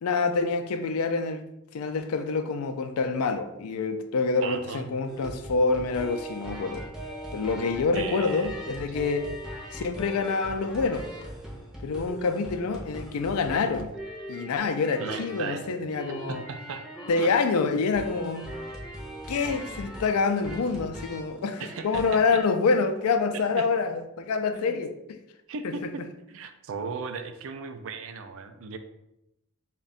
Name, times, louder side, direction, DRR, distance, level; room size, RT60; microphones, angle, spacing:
voice 1, 0.0-1.4 1.7-6.9 7.3-9.3 9.7-11.3 11.8-13.9 14.3-16.4 17.1-18.5 19.3-25.2 25.6-25.9, left 4 dB, 80° left, 0.4 m, -27 dB
voice 2, 4.4-4.9 7.9-8.6 15.0-15.7 16.3-16.8 17.2-17.3 21.6-22.0 23.3-23.7 24.5-24.8 25.5-26.0 26.3-28.8, right 5 dB, 60° right, 0.4 m, -36 dB
sound 1, 5.1-22.6 23.0-23.3, equal, 5° right, 0.6 m, -40 dB
3.5 x 2.2 x 4.0 m
head